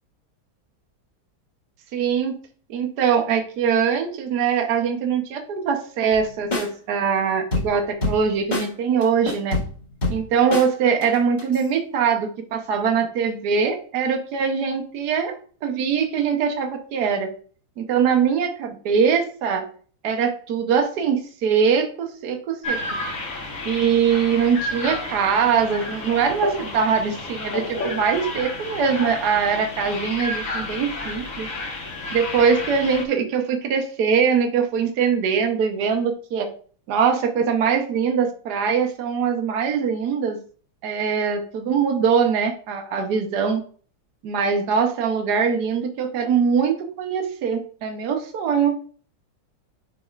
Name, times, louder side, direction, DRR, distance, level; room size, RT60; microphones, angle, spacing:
voice 1, 1.9-2.4 2.7-9.6 10.1-17.3 17.8-19.6 20.0-22.8 23.6-31.5 32.1-36.5 36.9-40.4 40.8-43.6 44.2-48.7, right 6 dB, 55° right, 4 dB, 1.4 m, -22 dB
sound 1, 6.1-6.3 6.5-6.7 7.5-8.3 8.5-8.7 9.0-10.7 11.0-11.6, left 2 dB, 20° left, 2.2 m, -25 dB
sound 2, 22.6-33.0, left 2 dB, 45° left, 1.4 m, -31 dB
10.5 x 4.2 x 2.4 m, 0.43 s
omnidirectional pair, 2.2 m